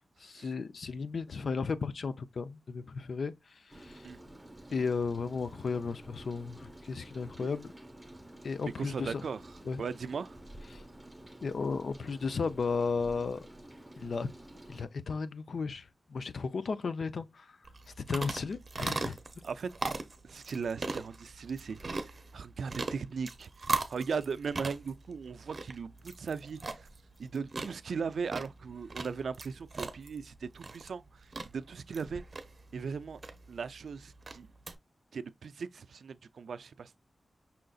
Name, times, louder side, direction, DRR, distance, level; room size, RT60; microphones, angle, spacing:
voice 1, 0.2-3.3 3.7-4.1 4.7-7.7 8.4-9.2 9.7-9.8 10.7-10.8 11.4-13.5 14.0-14.3 14.7-17.5 18.1-19.2, left 4 dB, 65° left, 0.5 m, -34 dB
Rain, 3.7-14.8, right 1 dB, 5° right, 1.0 m, -51 dB
voice 2, 8.6-9.4 9.8-10.4 19.4-19.7 20.2-21.8 22.3-26.9 27.2-32.2 32.7-33.2 33.5-34.5 35.1-37.0, right 5 dB, 85° right, 0.3 m, -38 dB
sound 1, 17.7-34.8, right 3 dB, 40° right, 0.7 m, -39 dB
5.6 x 3.8 x 2.3 m
wide cardioid pair, 155°, 0 cm